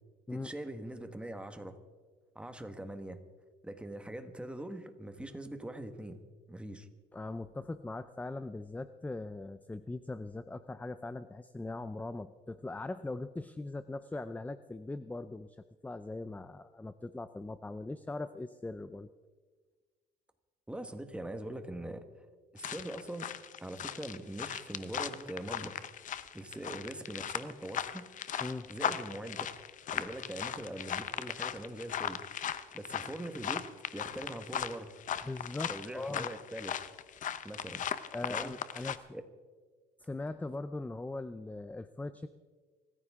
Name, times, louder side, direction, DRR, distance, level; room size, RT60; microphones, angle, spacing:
voice 1, 0.3-1.8 2.3-3.2 3.6-6.2 6.5-6.9 20.7-22.2 22.5-23.3 23.6-25.9 26.3-28.1 28.7-29.5 29.9-34.9 35.7-36.8 37.4-37.9 38.3-38.5 38.8-39.2, right 1 dB, 5° right, 8 dB, 1.5 m, -42 dB
voice 2, 7.1-19.1 28.4-28.7 35.2-36.3 38.1-39.1 40.0-42.3, left 2 dB, 10° left, 13 dB, 0.5 m, -40 dB
sound 1, 22.6-39.0, left 9 dB, 50° left, 0.8 m, -38 dB
25.0 x 14.5 x 3.7 m, 1.4 s
cardioid pair, 110°, 17 cm